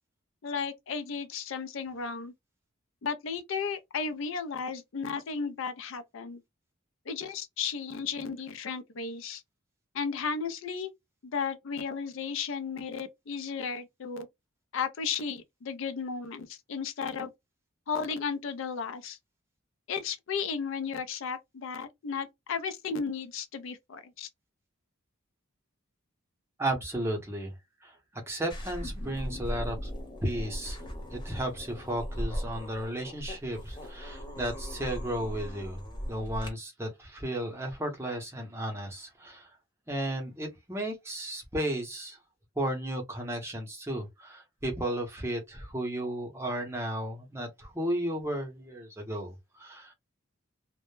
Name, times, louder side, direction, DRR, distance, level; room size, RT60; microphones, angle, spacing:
voice 1, 0.4-2.3 3.0-6.4 7.1-9.4 9.9-10.9 11.2-14.3 14.7-17.3 17.9-19.2 19.9-24.3, left 5 dB, 65° left, 0.4 m, -34 dB
voice 2, 26.6-27.5 27.8-28.0 28.3-29.9 30.2-30.8 31.1-35.8 36.1-39.5 39.9-42.2 42.6-49.9, right 1 dB, 10° right, 0.6 m, -34 dB
sound 1, 28.5-36.5, equal, 20° left, 0.8 m, -38 dB
2.1 x 2.0 x 3.0 m
head